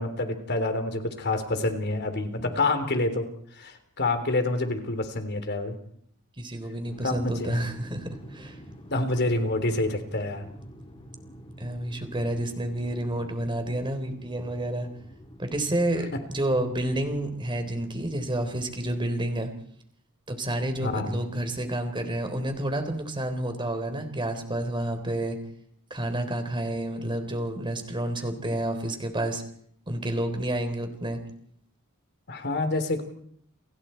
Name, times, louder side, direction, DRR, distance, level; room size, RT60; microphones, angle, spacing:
voice 1, 0.0-5.8 7.0-7.6 8.9-10.5 20.8-21.1 32.3-33.0, left 2 dB, 50° left, 7 dB, 3.5 m, -27 dB
voice 2, 6.4-8.6 11.6-14.9 15.4-19.5 20.3-25.4 25.9-29.4 29.9-31.2, right 1 dB, 20° right, 7 dB, 3.7 m, -29 dB
sound 1, 6.8-19.0, equal, 25° left, 3.9 m, -47 dB
30.0 x 26.0 x 4.5 m, 0.66 s
head